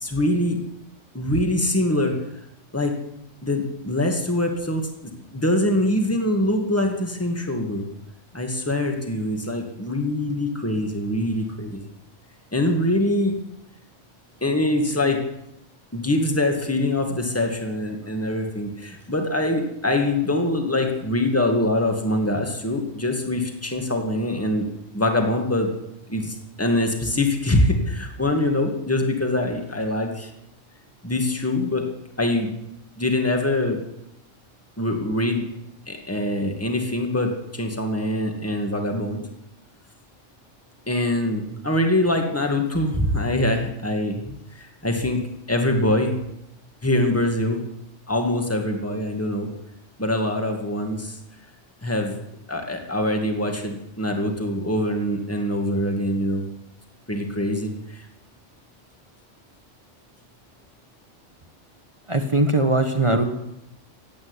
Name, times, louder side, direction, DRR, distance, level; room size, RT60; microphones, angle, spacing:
voice 1, 0.0-0.6 1.1-2.2 2.7-2.9 3.4-4.8 5.3-7.9 8.3-11.8 12.5-13.4 14.4-15.2 15.9-24.7 24.9-25.7 26.1-30.3 31.0-31.8 32.2-32.5 33.0-33.8 34.8-35.4 35.9-39.2 40.9-45.2 45.5-46.2 46.8-47.6 48.1-49.5 50.0-51.2 51.8-52.1 52.5-56.4 57.1-58.0, left 1 dB, 10° left, 3 dB, 2.1 m, -24 dB
voice 2, 62.1-63.2, right 2 dB, 25° right, 7 dB, 1.3 m, -20 dB
16.0 x 9.2 x 9.8 m, 0.84 s
omnidirectional pair, 1.3 m